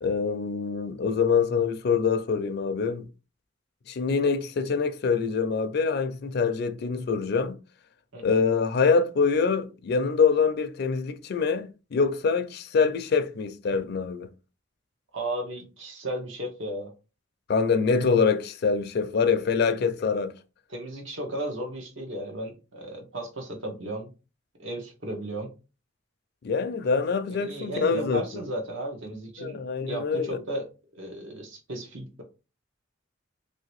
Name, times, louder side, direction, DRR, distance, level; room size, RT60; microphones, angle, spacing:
voice 1, 0.0-3.1 3.9-7.6 8.2-14.3 17.5-20.3 26.4-28.2 29.4-30.4, left 5 dB, 55° left, 0.4 m, -25 dB
voice 2, 15.1-16.9 20.7-24.1 24.6-25.5 27.3-29.6 29.9-32.2, right 1 dB, 80° right, 1.0 m, -35 dB
3.2 x 2.8 x 3.0 m
head